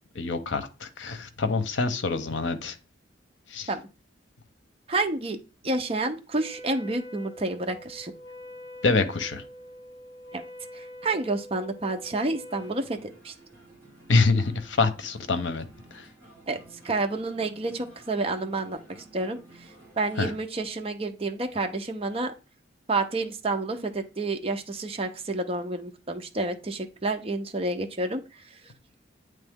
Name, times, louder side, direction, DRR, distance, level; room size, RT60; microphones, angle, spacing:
voice 1, 0.2-2.8 3.5-3.7 8.8-9.4 14.1-15.6 15.9-16.1 20.2-20.3, left 3 dB, 75° left, 0.7 m, -25 dB
voice 2, 4.9-8.1 10.3-10.4 10.7-13.3 16.5-16.6 16.8-19.7 20.0-22.3 22.9-28.6, right 2 dB, 30° right, 0.7 m, -29 dB
Wind instrument woodwind instrument, 6.3-12.9, equal, 60° left, 1.1 m, -44 dB
sound 1, 12.5-20.4, right 2 dB, 10° left, 3.1 m, -53 dB
8.8 x 3.2 x 3.6 m
head